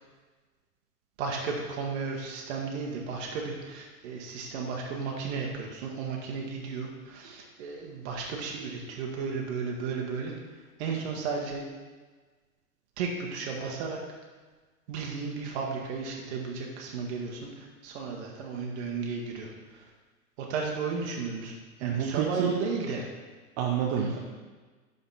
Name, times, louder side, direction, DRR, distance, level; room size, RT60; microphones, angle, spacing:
voice 1, 1.2-10.3 10.8-11.6 13.0-14.0 14.9-19.8 20.4-23.1 24.0-24.1, right 5 dB, 45° right, -1 dB, 1.4 m, -34 dB
voice 2, 21.8-22.5 23.6-24.2, right 8 dB, 25° right, 0 dB, 0.7 m, -28 dB
11.0 x 4.2 x 4.1 m, 1.3 s
figure-of-eight pair, 105°, 47 cm